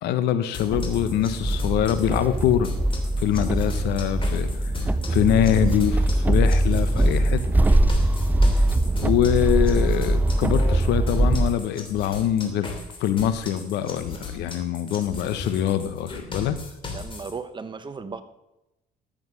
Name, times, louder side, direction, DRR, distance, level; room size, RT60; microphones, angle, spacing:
voice 1, 0.0-2.7 3.2-4.5 4.8-7.4 9.0-12.7 13.0-16.6, left 10 dB, 80° left, 12 dB, 1.0 m, -24 dB
sound 1, 0.5-17.3, left 4 dB, 30° left, 3.0 m, -37 dB
sound 2, 0.7-9.4, left 8 dB, 65° left, 1.6 m, -48 dB
sound 3, 0.7-11.5, right 1 dB, 10° right, 0.4 m, -22 dB
voice 2, 16.8-18.2, right 5 dB, 25° right, 10 dB, 1.0 m, -36 dB
14.0 x 7.8 x 6.3 m, 0.91 s
cardioid pair, 110°, 17 cm